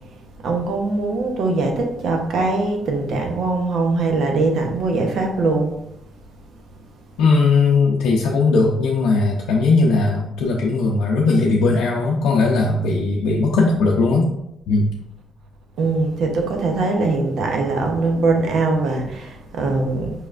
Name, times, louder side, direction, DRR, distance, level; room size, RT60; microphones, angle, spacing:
voice 1, 0.4-5.7 15.8-20.1, right 3 dB, 70° right, 3 dB, 0.8 m, -21 dB
voice 2, 7.2-14.3 14.7-14.9, left 3 dB, 85° left, -2 dB, 0.5 m, -18 dB
4.7 x 3.2 x 2.4 m, 0.80 s
cardioid pair, 90°, 0 cm